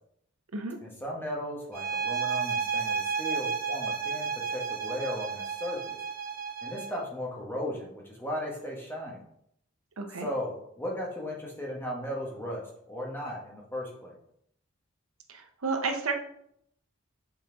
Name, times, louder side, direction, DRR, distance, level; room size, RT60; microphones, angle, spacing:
voice 1, 0.8-6.0 6.6-9.2 10.2-14.1, equal, 10° left, -2 dB, 1.2 m, -36 dB
sound 1, 1.7-7.0, right 6 dB, 45° right, 0.7 m, -32 dB
voice 2, 10.0-10.3 15.3-16.1, right 4 dB, 90° right, 4 dB, 0.8 m, -31 dB
5.7 x 4.3 x 3.8 m, 0.72 s
head